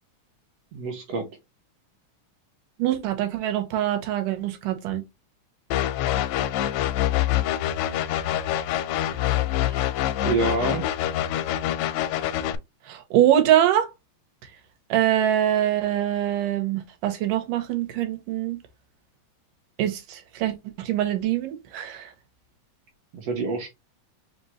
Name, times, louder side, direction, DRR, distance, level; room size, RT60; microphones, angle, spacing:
voice 1, 0.7-1.3 9.5-9.9 10.2-10.9 23.1-23.7, right 3 dB, 70° right, 1.6 m, -27 dB
voice 2, 2.8-5.0 12.9-13.9 14.9-18.6 19.8-22.1, right 11 dB, 90° right, 2.4 m, -24 dB
sound 1, 5.7-12.6, left 12 dB, 80° left, 1.6 m, -25 dB
5.0 x 2.8 x 3.1 m
omnidirectional pair, 3.6 m